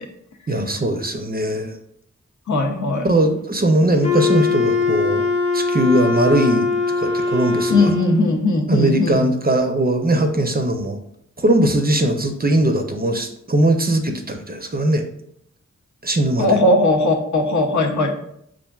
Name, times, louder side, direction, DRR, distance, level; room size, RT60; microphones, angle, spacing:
voice 1, 0.5-1.7 3.0-5.3 5.5-6.7 7.0-7.9 8.7-11.0 11.4-15.0 16.0-16.5, right 1 dB, 30° right, 5 dB, 0.5 m, -19 dB
voice 2, 2.5-3.1 7.7-9.2 16.4-18.1, left 2 dB, 75° left, 2 dB, 0.6 m, -18 dB
Wind instrument woodwind instrument, 4.0-8.3, left 4 dB, 25° left, 0.7 m, -21 dB
5.5 x 2.5 x 2.3 m, 0.73 s
wide cardioid pair, 55°, 30 cm